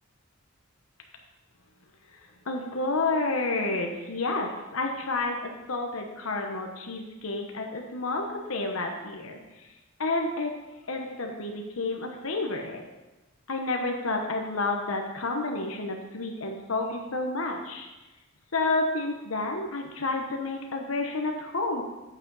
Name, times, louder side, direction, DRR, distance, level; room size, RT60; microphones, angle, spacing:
voice 1, 2.1-9.7 10.0-10.5 10.9-12.8 13.5-17.9 18.5-21.8, left 2 dB, 85° left, 2 dB, 1.1 m, -30 dB
9.6 x 8.3 x 4.0 m, 1.1 s
head